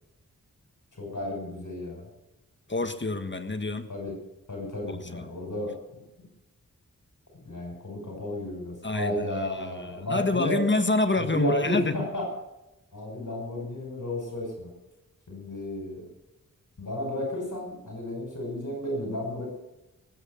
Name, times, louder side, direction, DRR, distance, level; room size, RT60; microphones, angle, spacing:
voice 1, 0.9-2.1 3.9-4.1 4.5-5.7 6.2-6.3 7.4-10.6 11.2-12.2 12.9-14.7 15.3-16.0 16.8-19.5, left 1 dB, 65° left, 0 dB, 5.8 m, -33 dB
voice 2, 2.7-3.9 4.9-5.2 8.8-12.0, left 2 dB, 35° left, 8 dB, 1.6 m, -27 dB
19.0 x 9.1 x 6.7 m, 0.95 s
cardioid pair, 50°, 33 cm